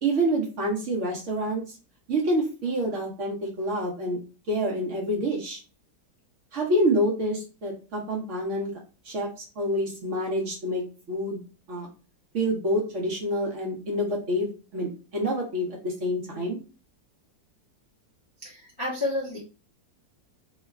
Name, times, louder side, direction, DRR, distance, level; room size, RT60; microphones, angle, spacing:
voice 1, 0.0-1.7 2.1-4.2 4.5-5.6 6.5-8.7 9.0-9.3 9.6-10.8 11.1-11.4 11.7-11.9 12.3-16.6, equal, 60° right, -2 dB, 0.9 m, -27 dB
voice 2, 18.4-19.4, left 2 dB, 35° left, -5 dB, 0.4 m, -30 dB
3.0 x 2.2 x 2.2 m, 0.33 s
omnidirectional pair, 1.8 m